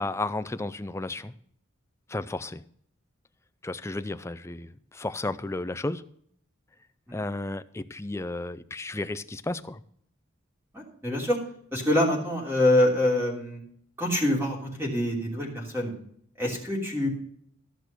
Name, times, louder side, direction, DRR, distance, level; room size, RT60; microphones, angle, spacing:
voice 1, 0.0-1.3 2.1-2.6 3.6-6.0 7.1-9.8, left 2 dB, 15° left, 13 dB, 0.4 m, -33 dB
voice 2, 10.7-11.4 11.7-13.6 14.0-15.9 16.4-17.1, left 1 dB, 10° right, -1 dB, 3.1 m, -25 dB
14.0 x 6.1 x 6.7 m, 0.65 s
head